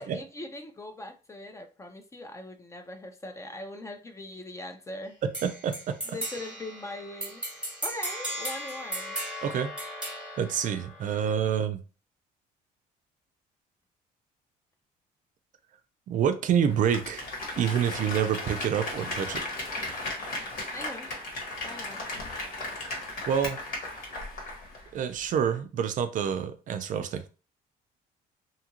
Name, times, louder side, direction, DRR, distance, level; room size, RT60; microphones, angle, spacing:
voice 1, 0.0-5.2 6.0-9.2 20.7-21.1 21.6-22.1, left 1 dB, 15° left, 0.5 m, -41 dB
sound 1, 5.3-11.3, right 1 dB, 5° right, 1.1 m, -37 dB
voice 2, 5.4-6.0 9.4-9.7 10.4-11.8 16.1-17.2 17.6-19.4 23.3-23.6 24.9-27.3, right 8 dB, 50° right, 0.4 m, -27 dB
Applause, 16.7-24.9 25.2-25.3, left 2 dB, 60° left, 1.3 m, -36 dB
2.8 x 2.4 x 2.9 m
cardioid pair, 110°, 17 cm